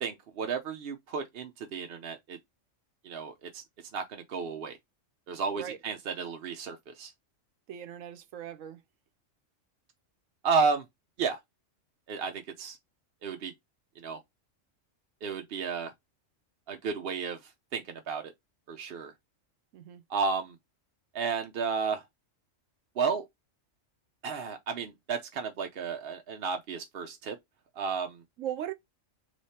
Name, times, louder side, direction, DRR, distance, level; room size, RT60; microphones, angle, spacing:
voice 1, 0.0-2.4 3.0-3.6 3.9-4.8 5.3-7.1 10.4-10.9 11.2-11.4 12.1-12.8 13.2-13.5 14.0-14.2 15.2-15.9 16.7-17.4 17.7-18.3 18.7-19.1 20.1-20.6 21.1-22.0 23.0-23.3 24.2-27.4 27.8-28.2, right 5 dB, 55° right, 0.8 m, -32 dB
voice 2, 7.7-8.8 19.7-20.0 28.4-28.7, right 10 dB, 80° right, 1.0 m, -38 dB
3.3 x 3.1 x 4.1 m
omnidirectional pair, 1.3 m